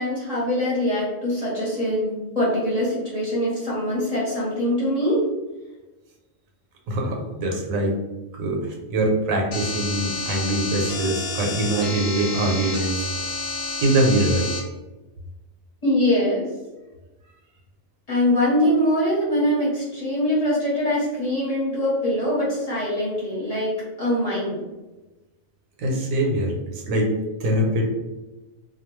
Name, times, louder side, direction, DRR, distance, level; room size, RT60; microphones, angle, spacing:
voice 1, 0.0-5.2 15.8-16.5 18.1-24.7, left 1 dB, 30° left, -8 dB, 1.0 m, -23 dB
voice 2, 6.9-7.9 8.4-13.1 13.8-14.5 25.8-27.1 27.4-27.8, right 1 dB, 80° right, 0 dB, 1.0 m, -23 dB
sound 1, 9.5-14.6, left 3 dB, 75° left, 1.1 m, -30 dB
2.3 x 2.3 x 3.0 m, 1.1 s
omnidirectional pair, 1.4 m